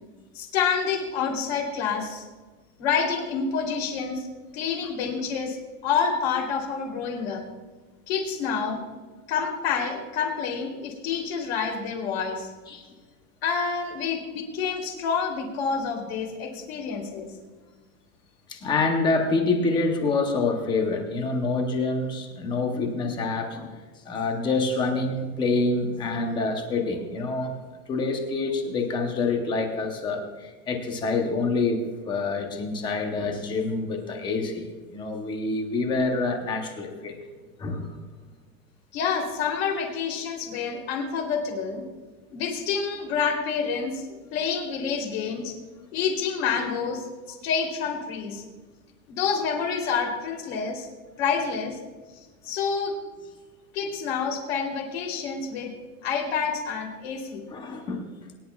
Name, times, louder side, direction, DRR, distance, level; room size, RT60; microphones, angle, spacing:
voice 1, 0.3-2.2 2.8-4.3 4.5-5.6 5.8-7.4 8.1-8.8 9.3-12.5 13.4-17.3 38.9-41.8 42.3-44.1 44.3-45.5 45.9-47.0 47.4-48.4 49.1-50.9 51.2-51.8 52.4-52.9 53.7-55.7 56.0-57.5, left 6 dB, 40° left, 1 dB, 3.1 m, -28 dB
voice 2, 18.5-23.8 24.0-27.6 27.9-37.2 37.6-38.0 57.5-58.0, left 3 dB, 10° left, 4 dB, 0.7 m, -27 dB
23.5 x 10.5 x 2.3 m, 1.4 s
supercardioid pair, 170°, 45 cm